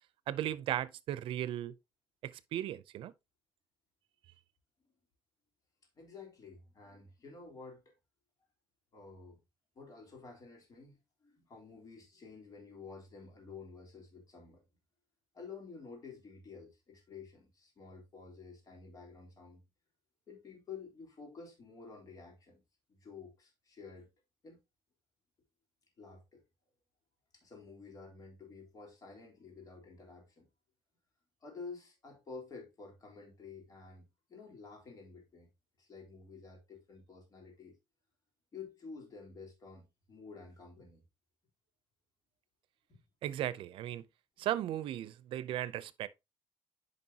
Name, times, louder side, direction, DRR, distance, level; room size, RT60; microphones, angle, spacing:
voice 1, 0.3-1.7 2.2-3.1 43.2-44.0 44.4-46.1, right 12 dB, 85° right, 0.6 m, -36 dB
voice 2, 5.9-7.9 8.9-9.4 9.7-14.6 15.3-19.6 20.3-22.6 22.9-24.1 24.4-24.6 26.0-26.4 27.3-30.5 31.4-35.5 35.8-37.8 38.5-41.0 42.9-43.0 44.4-44.5, left 4 dB, 45° left, 3.5 m, -51 dB
9.4 x 5.3 x 2.8 m
cardioid pair, 135°, 9 cm